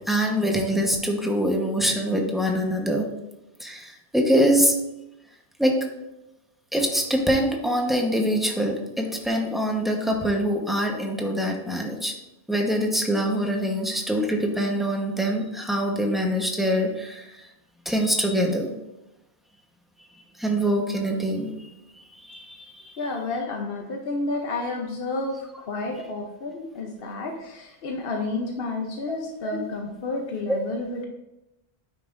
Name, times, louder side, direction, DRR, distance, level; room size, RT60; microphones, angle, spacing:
voice 1, 0.1-3.1 3.6-4.7 5.6-5.8 6.7-12.1 12.5-17.4 17.8-18.7 20.4-22.9 29.1-29.2 29.4-29.6 30.5-30.6, equal, ahead, 1 dB, 0.9 m, -24 dB
voice 2, 23.0-31.1, left 2 dB, 60° left, 2 dB, 1.0 m, -31 dB
9.4 x 5.6 x 2.5 m, 0.94 s
omnidirectional pair, 1.1 m